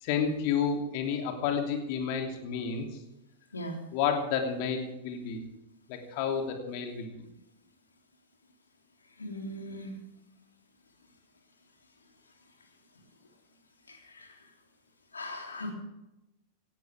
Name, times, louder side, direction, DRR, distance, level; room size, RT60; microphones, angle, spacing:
voice 1, 0.0-2.9 3.9-5.4 5.9-7.3, left 6 dB, 45° left, 3 dB, 3.0 m, -30 dB
voice 2, 9.2-9.9 13.9-14.3 15.1-15.7, left 1 dB, 75° left, 2 dB, 3.3 m, -39 dB
17.5 x 16.5 x 3.6 m, 0.93 s
figure-of-eight pair, 90°, 0 cm